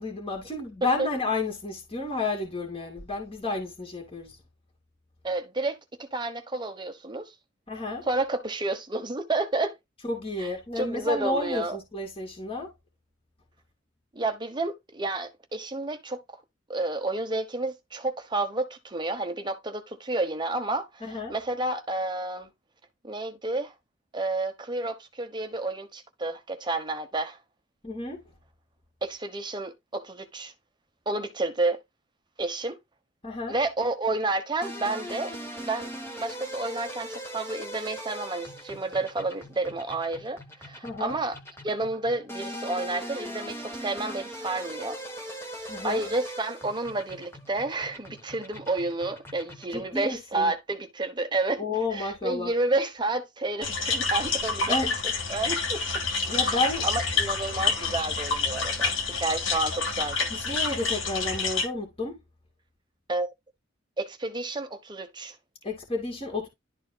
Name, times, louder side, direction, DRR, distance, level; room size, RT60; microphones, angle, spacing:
voice 1, 0.0-4.3 7.7-8.0 10.0-12.7 21.0-21.3 27.8-28.2 33.2-33.5 40.8-41.1 45.7-46.0 49.7-50.5 51.6-52.5 54.7-54.9 56.3-56.9 60.3-62.2 65.6-66.5, left 3 dB, 30° left, 2.4 m, -31 dB
voice 2, 5.2-7.3 8.1-9.8 10.4-10.5 10.8-11.8 14.1-16.4 16.7-22.5 23.0-23.7 24.1-27.4 29.0-30.5 31.1-31.8 32.4-32.8 33.5-35.3 35.6-35.9 36.2-41.4 41.6-45.0 45.8-51.6 51.9-54.8 55.3-55.8 56.3-60.3 63.1-63.3 64.0-65.4, right 2 dB, 25° right, 1.0 m, -30 dB
sound 1, 34.6-50.0, equal, 10° left, 1.3 m, -40 dB
sound 2, 53.6-61.7, left 4 dB, 90° left, 2.0 m, -28 dB
11.5 x 4.3 x 2.2 m
head